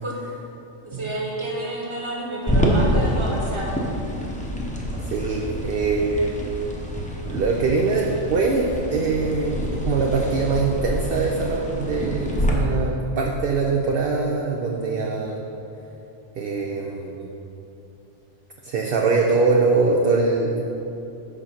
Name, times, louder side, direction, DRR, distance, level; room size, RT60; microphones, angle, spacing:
voice 1, 0.8-3.9, right 1 dB, 25° right, -3 dB, 1.2 m, -29 dB
sound 1, 2.5-12.5, equal, 5° left, 0.7 m, -27 dB
voice 2, 5.0-6.4 7.3-15.4 16.4-17.3 18.6-20.6, right 4 dB, 60° right, 0 dB, 0.7 m, -23 dB
6.8 x 5.0 x 5.7 m, 2.9 s
omnidirectional pair, 1.2 m